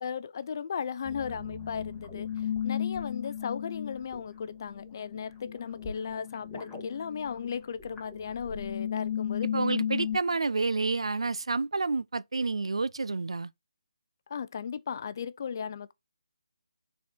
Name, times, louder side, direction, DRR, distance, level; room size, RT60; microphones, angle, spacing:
voice 1, 0.0-9.5 14.3-15.9, left 7 dB, 40° left, 0.5 m, -36 dB
sound 1, 1.0-10.2, left 9 dB, 5° left, 1.4 m, -35 dB
voice 2, 9.5-13.5, right 3 dB, 80° right, 0.4 m, -29 dB
5.9 x 4.2 x 4.4 m
figure-of-eight pair, 160°, 3 cm